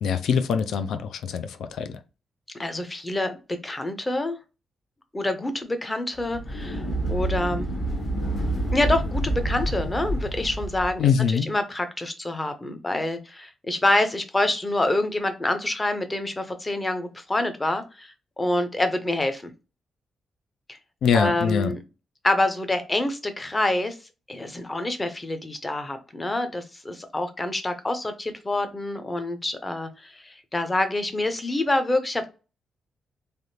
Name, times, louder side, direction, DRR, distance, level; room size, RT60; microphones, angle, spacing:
voice 1, 0.0-2.0 11.0-11.5 21.0-21.8, left 7 dB, 75° left, 0.4 m, -23 dB
voice 2, 2.6-4.4 5.1-6.8 7.1-7.7 8.7-11.1 11.5-19.5 20.7-20.8 21.1-21.8 22.2-24.0 24.3-32.3, left 2 dB, 15° left, 0.6 m, -26 dB
sound 1, 6.2-11.0, right 1 dB, 45° left, 0.9 m, -28 dB
3.4 x 2.4 x 2.7 m
wide cardioid pair, 145°, 0 cm